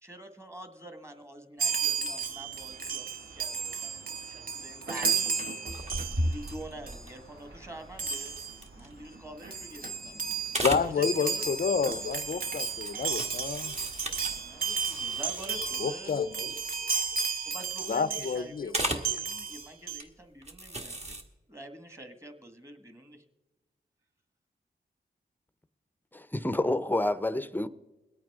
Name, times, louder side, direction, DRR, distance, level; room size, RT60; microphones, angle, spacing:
voice 1, 0.0-5.9 6.2-8.3 8.7-10.4 10.9-11.4 14.3-16.2 17.5-21.2 21.5-23.2, right 1 dB, 15° right, 1.7 m, -46 dB
Chime, 1.6-6.6 6.9-7.1 8.0-8.6 9.2-9.3 9.4-18.4 18.8-20.0, right 5 dB, 50° right, 1.1 m, -33 dB
sound 1, 1.6-15.7, right 1 dB, 80° right, 4.4 m, -54 dB
sound 2, 5.7-9.3 9.8-10.2 10.4-10.9 12.0-12.4 12.8-15.7 16.2-16.3 16.5-16.8 17.1-17.7 18.7-19.1 19.8-20.0 20.4-21.2, right 1 dB, 35° right, 1.7 m, -35 dB
voice 2, 10.6-13.7 15.8-16.2 17.9-18.7, left 6 dB, 50° left, 0.5 m, -29 dB
voice 3, 26.1-27.7, left 1 dB, 10° left, 0.6 m, -28 dB
21.5 x 8.8 x 3.6 m
cardioid pair, 65°, 19 cm